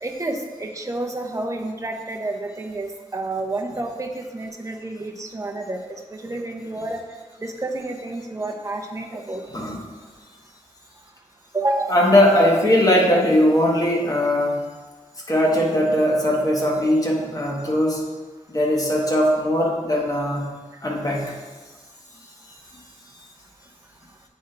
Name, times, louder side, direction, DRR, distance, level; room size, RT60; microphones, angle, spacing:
voice 1, 0.0-5.8 6.1-7.0 7.4-9.4 11.5-12.0, right 2 dB, 25° right, 2 dB, 0.7 m, -29 dB
voice 2, 11.9-14.6 15.3-18.0 18.5-20.5 20.8-21.3, left 1 dB, 25° left, -1 dB, 1.3 m, -19 dB
8.4 x 3.6 x 4.4 m, 1.3 s
wide cardioid pair, 100°, 13 cm